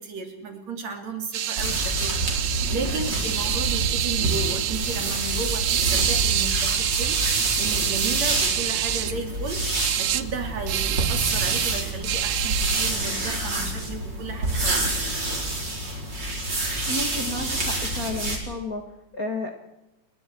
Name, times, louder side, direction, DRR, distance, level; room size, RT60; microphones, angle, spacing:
voice 1, 0.0-14.9, right 4 dB, 55° right, 4 dB, 4.0 m, -34 dB
sound 1, 1.3-9.1 9.7-10.2 10.7-12.9, right 11 dB, 80° right, 1.2 m, -27 dB
sound 2, 1.6-18.4, right 2 dB, 30° right, 5.1 m, -27 dB
voice 2, 16.9-18.8 19.1-19.5, left 2 dB, 35° left, 2 dB, 1.9 m, -31 dB
28.5 x 22.0 x 4.6 m, 0.90 s
omnidirectional pair, 3.7 m